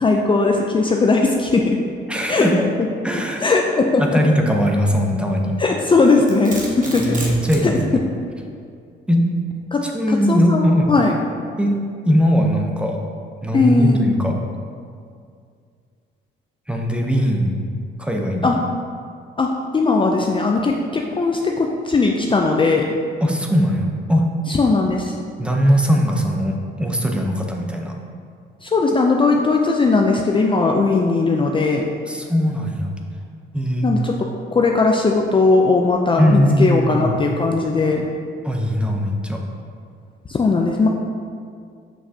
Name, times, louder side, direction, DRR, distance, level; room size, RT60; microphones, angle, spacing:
voice 1, 0.0-1.8 2.3-2.5 3.1-4.2 5.6-7.2 7.6-7.8 9.7-9.8 10.1-11.2 13.5-14.2 18.4-18.6 19.4-22.9 24.5-25.1 28.6-31.8 33.8-34.2 34.5-38.0 40.3-40.9, left 3 dB, 25° left, 1 dB, 0.5 m, -18 dB
voice 2, 2.1-2.6 3.0-3.4 4.0-5.6 7.0-7.8 9.1-9.2 9.8-11.0 11.6-11.8 12.1-13.0 13.4-14.3 16.7-17.5 18.0-18.5 23.2-24.2 25.4-28.0 32.1-32.9 33.5-33.9 36.2-37.1 38.4-39.4, equal, 5° right, 1 dB, 0.8 m, -19 dB
Domestic sounds home sounds, 5.8-7.7, right 1 dB, 40° right, 1.3 m, -31 dB
7.3 x 5.8 x 2.8 m, 2.2 s
cardioid pair, 90°, 20 cm